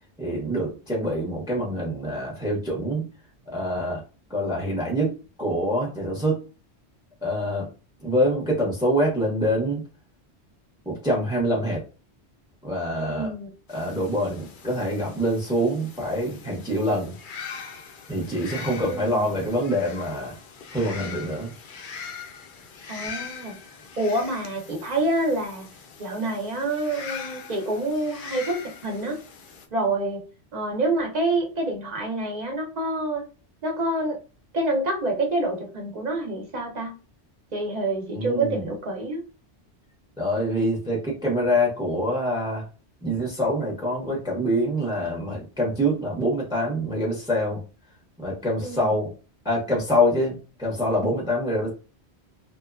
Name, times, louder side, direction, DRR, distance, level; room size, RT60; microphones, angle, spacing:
voice 1, 0.2-3.0 3.5-4.0 4.3-5.1 5.4-6.4 7.2-7.7 8.0-9.8 10.9-11.8 12.6-13.3 13.7-17.1 18.1-20.4 20.7-21.5 38.1-38.6 40.2-42.6 43.0-47.6 48.2-49.1 49.4-51.7, equal, 5° right, -2 dB, 0.7 m, -25 dB
voice 2, 13.0-13.5 18.8-19.2 22.9-23.6 24.0-25.7 26.0-29.2 29.7-30.2 30.5-33.2 33.6-34.2 34.5-36.9 37.5-39.2 48.6-48.9, right 2 dB, 45° right, 1 dB, 0.8 m, -27 dB
sound 1, 13.7-29.7, left 6 dB, 60° left, 0.6 m, -41 dB
2.9 x 2.1 x 2.4 m, 0.34 s
omnidirectional pair, 1.1 m